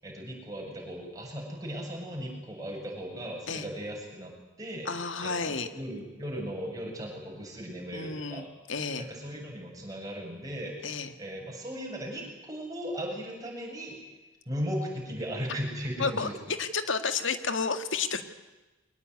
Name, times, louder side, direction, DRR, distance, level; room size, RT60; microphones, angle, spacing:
voice 1, 0.0-4.3 4.6-4.9 5.2-8.5 9.0-10.8 11.2-13.9 14.5-16.3, equal, 20° right, -1 dB, 7.9 m, -37 dB
voice 2, 4.9-5.7 7.9-9.1 10.8-11.1 16.0-16.3 16.6-18.2, left 5 dB, 75° left, 9 dB, 2.0 m, -31 dB
23.5 x 19.5 x 9.6 m, 1.1 s
head